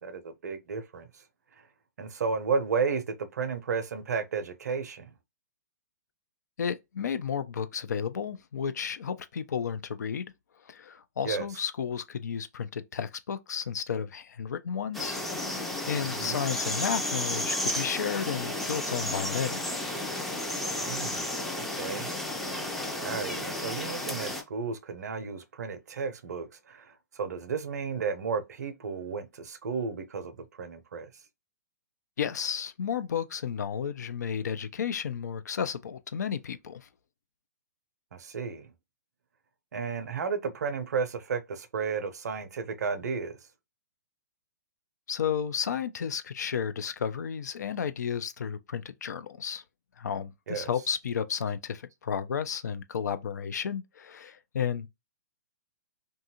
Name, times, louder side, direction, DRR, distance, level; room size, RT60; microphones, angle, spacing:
voice 1, 0.0-1.1 2.0-3.0 3.3-5.1 11.2-11.5 16.0-16.4 20.8-22.1 23.0-31.1 38.1-38.7 39.7-43.4 50.5-50.7, right 5 dB, 65° right, 0.6 m, -33 dB
voice 2, 6.6-10.3 10.7-15.2 15.5-19.6 32.2-36.9 45.1-49.6 50.0-54.9, left 7 dB, 65° left, 0.3 m, -32 dB
sound 1, 14.9-24.4, left 1 dB, ahead, 0.4 m, -32 dB
2.6 x 2.3 x 2.7 m
figure-of-eight pair, 120°, 10 cm